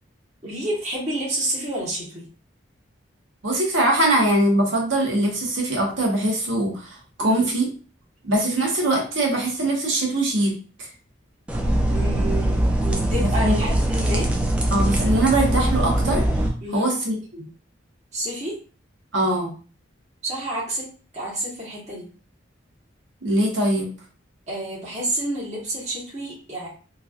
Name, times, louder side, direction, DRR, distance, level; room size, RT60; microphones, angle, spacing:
voice 1, 0.4-2.2 7.2-7.4 11.8-14.3 16.6-16.9 18.1-18.5 20.2-20.9 21.1-22.1 24.5-26.7, right 1 dB, 35° right, -6 dB, 1.2 m, -29 dB
voice 2, 3.4-7.7 8.2-10.9 13.2-13.6 14.7-16.3 16.7-17.5 19.1-19.5 23.2-23.9, right 1 dB, 75° right, -1 dB, 1.0 m, -22 dB
sound 1, 11.5-16.5, right 1 dB, 5° right, 0.3 m, -21 dB
3.1 x 2.5 x 2.4 m, 0.38 s
head